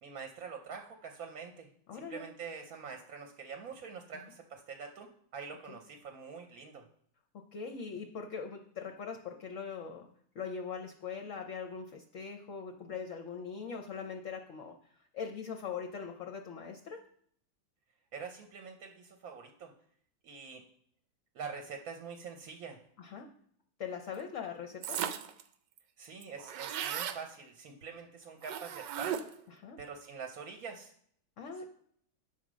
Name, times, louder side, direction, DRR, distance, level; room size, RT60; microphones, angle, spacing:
voice 1, 0.0-6.9 18.1-19.7 20.2-20.6 21.3-22.8 26.0-29.2 29.8-30.9 31.5-31.6, right 5 dB, 60° right, 4 dB, 1.1 m, -45 dB
voice 2, 1.9-2.2 4.2-4.3 5.7-5.8 7.5-10.1 10.3-14.7 15.1-17.0 23.0-23.3 23.8-25.0 29.6-29.8 31.4-31.6, left 6 dB, 60° left, 4 dB, 0.9 m, -41 dB
sound 1, 24.8-25.4 25.8-25.9 26.0-27.2 28.4-29.5, right 9 dB, 75° right, 1.2 m, -36 dB
9.1 x 4.3 x 6.1 m, 0.64 s
omnidirectional pair, 2.0 m